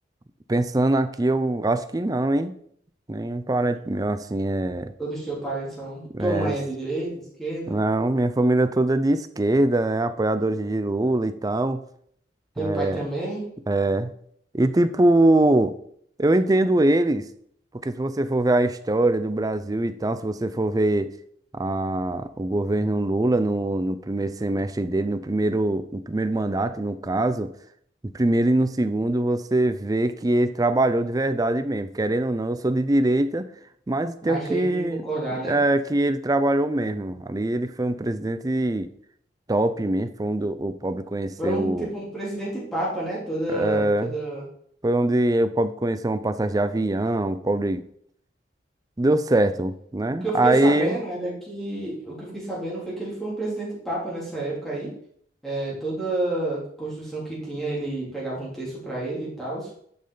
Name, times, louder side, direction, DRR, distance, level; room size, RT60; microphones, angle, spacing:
voice 1, 0.5-2.5 3.1-4.9 6.1-6.5 7.7-11.8 12.6-13.0 13.7-14.1 14.5-15.7 16.2-17.2 17.8-21.1 21.5-27.5 28.1-33.5 33.9-35.0 35.4-38.9 39.5-41.9 43.5-44.2 44.8-47.8 49.0-51.0, right 1 dB, 20° right, 12 dB, 0.4 m, -23 dB
voice 2, 5.0-7.1 7.4-7.7 12.5-13.4 34.2-35.5 41.4-44.4 50.1-54.9 55.4-59.7, right 2 dB, ahead, -7 dB, 3.2 m, -29 dB
10.5 x 5.3 x 3.9 m, 0.65 s
head